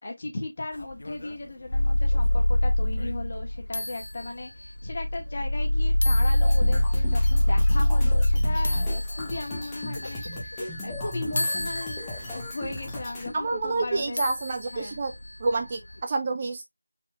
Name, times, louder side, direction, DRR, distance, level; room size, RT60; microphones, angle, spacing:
voice 1, 0.0-14.2 14.7-15.0, left 2 dB, 30° left, 1.7 m, -37 dB
sound 1, 0.7-16.0, left 1 dB, 50° left, 0.7 m, -38 dB
sound 2, 1.7-3.8 4.7-9.6 12.4-12.5, left 1 dB, 70° left, 1.5 m, -23 dB
sound 3, 6.4-13.3, left 1 dB, 5° left, 1.0 m, -36 dB
voice 2, 13.3-15.1 15.4-16.6, right 3 dB, 20° right, 0.4 m, -28 dB
5.0 x 4.2 x 2.4 m
figure-of-eight pair, 170°, 0 cm